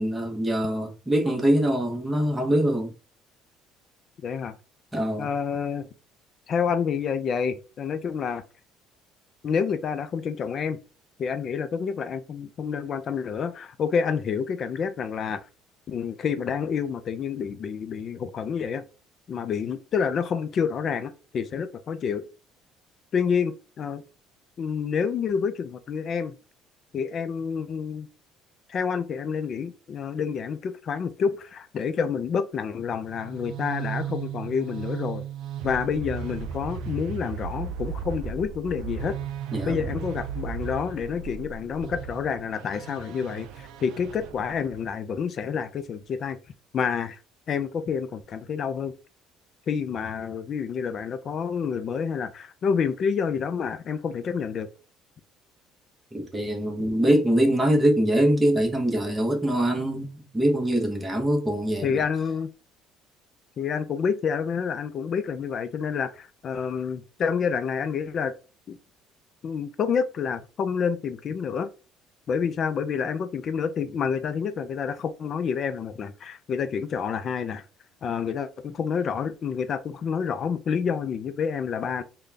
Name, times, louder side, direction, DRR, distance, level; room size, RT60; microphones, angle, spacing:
voice 1, 0.0-2.9 4.9-5.3 39.5-39.9 56.1-62.0, right 1 dB, 10° right, 0.9 m, -23 dB
voice 2, 4.2-4.6 5.2-5.9 6.5-8.4 9.4-10.8 11.2-15.5 15.9-18.8 19.3-22.2 23.1-24.0 24.6-26.3 26.9-28.1 28.7-35.2 35.6-39.2 39.6-46.4 46.7-47.2 47.5-48.9 49.7-54.7 61.8-62.5 63.6-68.3 68.7-68.8 69.4-71.7 72.3-77.6 78.0-82.0, left 6 dB, 35° left, 0.4 m, -28 dB
sound 1, 33.1-44.9, right 7 dB, 70° right, 0.4 m, -35 dB
3.8 x 2.2 x 3.3 m
cardioid pair, 160°, 0 cm